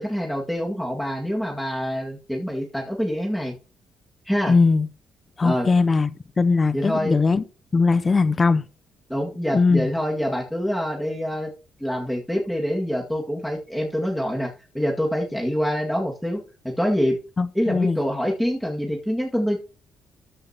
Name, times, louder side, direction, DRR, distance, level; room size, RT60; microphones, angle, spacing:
voice 1, 0.0-3.5 4.3-4.5 5.4-5.7 6.7-7.2 9.1-11.5 11.8-17.2 17.5-19.6, equal, ahead, 2.0 m, -25 dB
voice 2, 4.5-4.9 5.4-6.1 6.4-7.4 7.7-8.6 9.5-9.9 17.4-18.0, left 4 dB, 30° left, 0.6 m, -19 dB
13.5 x 6.2 x 2.9 m
cardioid pair, 90°, 0 cm